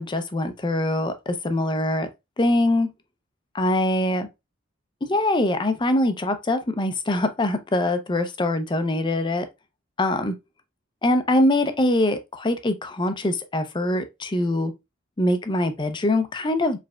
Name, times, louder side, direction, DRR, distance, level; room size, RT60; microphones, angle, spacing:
voice 1, 0.0-2.1 2.4-2.9 3.5-4.3 5.0-9.5 10.0-10.4 11.0-14.7 15.2-16.8, left 1 dB, 25° left, 0.5 m, -23 dB
4.8 x 3.3 x 2.2 m
head